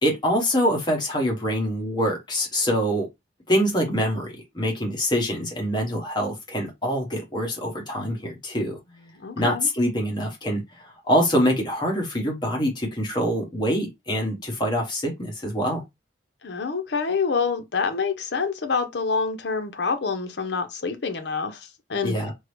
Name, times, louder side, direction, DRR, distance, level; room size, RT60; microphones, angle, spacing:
voice 1, 0.0-3.1 3.5-8.8 9.4-15.8 22.0-22.3, equal, 25° left, 1.0 m, -25 dB
voice 2, 9.1-9.7 16.4-22.1, left 5 dB, 60° left, 0.6 m, -27 dB
3.6 x 2.0 x 3.1 m
head